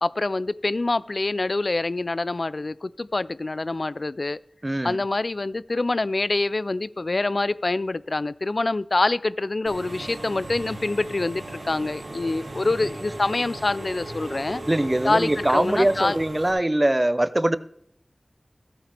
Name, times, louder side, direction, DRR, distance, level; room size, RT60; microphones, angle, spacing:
voice 1, 0.0-4.4 4.8-14.6 15.0-16.2, left 2 dB, 55° left, 0.3 m, -25 dB
voice 2, 4.6-5.0 14.7-17.6, right 1 dB, 25° right, 0.5 m, -22 dB
Engine / Mechanisms, 9.7-16.5, right 1 dB, 85° right, 2.7 m, -37 dB
14.5 x 8.8 x 3.3 m
wide cardioid pair, 55°, 0 cm